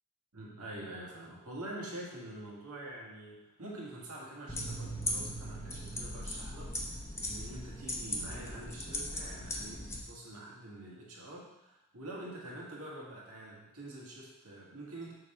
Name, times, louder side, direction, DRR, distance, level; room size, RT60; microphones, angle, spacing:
voice 1, 0.3-15.1, right 1 dB, 85° right, -3 dB, 1.7 m, -46 dB
sound 1, 4.5-10.0, left 1 dB, 10° left, 0.7 m, -38 dB
6.3 x 3.9 x 4.3 m, 0.91 s
head